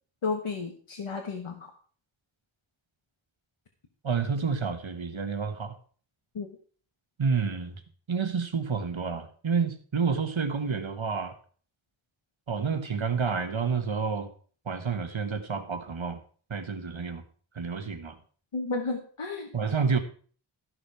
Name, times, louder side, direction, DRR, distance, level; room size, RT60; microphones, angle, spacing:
voice 1, 0.2-1.7 6.3-6.5 18.5-19.5, left 4 dB, 85° left, 1 dB, 1.4 m, -32 dB
voice 2, 4.0-5.8 7.2-7.8 8.1-11.4 12.5-14.3 14.7-16.2 16.5-17.2 17.5-18.2 19.5-20.0, right 5 dB, 70° right, 8 dB, 1.4 m, -29 dB
13.5 x 6.1 x 4.8 m, 0.43 s
wide cardioid pair, 70°, 49 cm